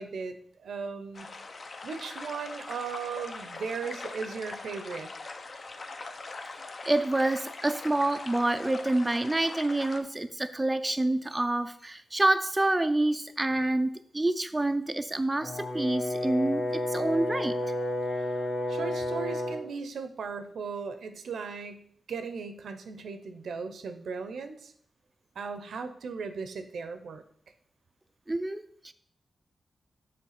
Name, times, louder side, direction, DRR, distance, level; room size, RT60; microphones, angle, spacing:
voice 1, 0.0-1.3 1.8-5.1 18.2-18.3 18.7-24.7 25.4-27.2, right 5 dB, 80° right, 9 dB, 0.7 m, -37 dB
sound 1, 1.1-10.0, left 3 dB, 45° left, 0.7 m, -42 dB
voice 2, 6.8-17.6 28.3-28.9, right 2 dB, 15° right, 9 dB, 0.4 m, -27 dB
Brass instrument, 15.4-19.7, left 1 dB, 65° left, 1.3 m, -31 dB
6.6 x 3.3 x 5.8 m, 0.63 s
wide cardioid pair, 95°, 0 cm